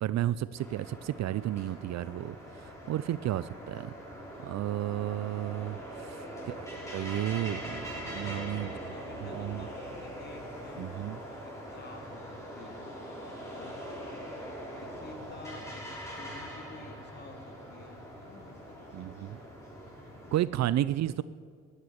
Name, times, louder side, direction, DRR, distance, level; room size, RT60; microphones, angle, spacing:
voice 1, 0.0-3.9 4.4-7.8 8.1-8.7 9.2-9.7 10.8-11.2 18.9-19.4 20.3-21.2, right 13 dB, 60° right, 17 dB, 0.5 m, -32 dB
sound 1, 0.6-20.4, equal, 10° left, 5.5 m, -42 dB
voice 2, 4.9-6.0 8.0-10.8 11.4-13.9 14.8-15.9 16.1-19.5 20.0-20.7, left 3 dB, 35° left, 4 dB, 2.7 m, -51 dB
14.5 x 9.8 x 9.9 m, 2.1 s
cardioid pair, 90°, 30 cm